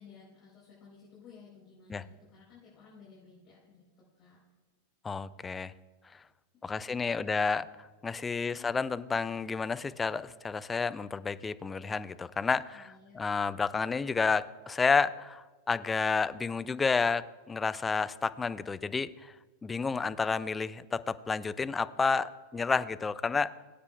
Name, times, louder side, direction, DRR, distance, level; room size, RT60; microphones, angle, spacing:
voice 1, 0.0-4.4 6.7-7.4 8.4-8.8 12.7-13.2, left 5 dB, 40° left, -7 dB, 3.7 m, -56 dB
voice 2, 5.0-5.7 6.1-6.2 6.6-7.7 8.0-19.3 19.6-23.5, left 4 dB, 15° left, 15 dB, 0.3 m, -30 dB
20.0 x 8.4 x 2.3 m, 1.3 s
figure-of-eight pair, 90°, 0 cm